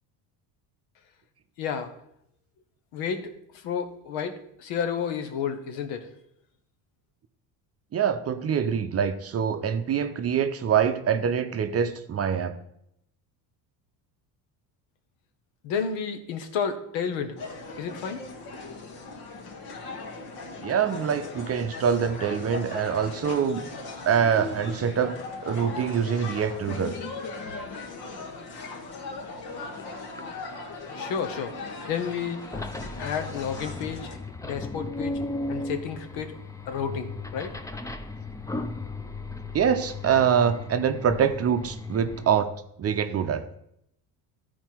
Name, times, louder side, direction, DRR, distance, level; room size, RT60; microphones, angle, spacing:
voice 1, 1.6-1.9 2.9-3.3 3.6-6.1 15.6-17.4 17.8-18.2 31.0-32.4 33.0-35.2 35.5-36.3 36.7-37.5, left 7 dB, 80° left, 8 dB, 1.3 m, -31 dB
voice 2, 7.9-12.5 20.6-23.7 24.1-25.1 25.4-26.9 39.5-42.5 42.8-43.5, right 7 dB, 35° right, 8 dB, 0.6 m, -25 dB
sound 1, 17.4-34.2, left 3 dB, 55° left, 1.6 m, -38 dB
sound 2, 29.5-29.6 29.8-42.4, left 2 dB, 10° left, 0.5 m, -36 dB
13.5 x 4.6 x 4.5 m, 0.76 s
cardioid pair, 110°, 45 cm